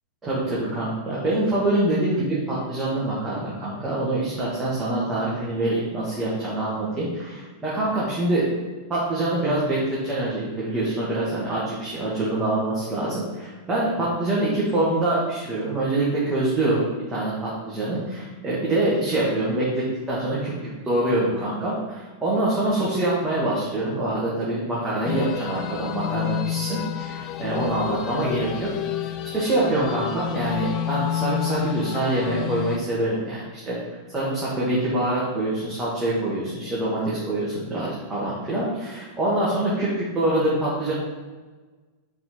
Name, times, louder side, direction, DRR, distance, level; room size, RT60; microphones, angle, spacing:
voice 1, 0.2-8.5 8.9-20.5 20.8-28.7 29.3-33.8 34.1-40.9, right 1 dB, 15° right, -8 dB, 2.2 m, -25 dB
sound 1, 25.0-32.8, left 11 dB, 35° left, 0.6 m, -29 dB
8.9 x 4.1 x 4.6 m, 1.3 s
figure-of-eight pair, 90°, 0 cm